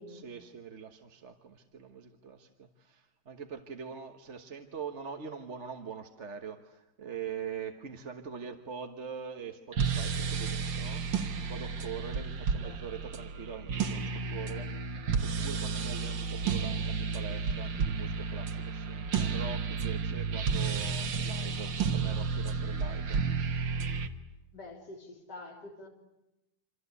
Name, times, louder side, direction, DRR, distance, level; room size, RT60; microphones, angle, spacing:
voice 1, 0.1-11.1 11.5-14.9 15.2-23.6, right 6 dB, 40° right, 5 dB, 1.5 m, -43 dB
sound 1, 9.7-24.1, right 5 dB, 80° right, 2.1 m, -32 dB
voice 2, 24.5-25.9, left 2 dB, 65° left, 2 dB, 4.0 m, -46 dB
27.5 x 26.0 x 8.3 m, 0.92 s
omnidirectional pair, 2.0 m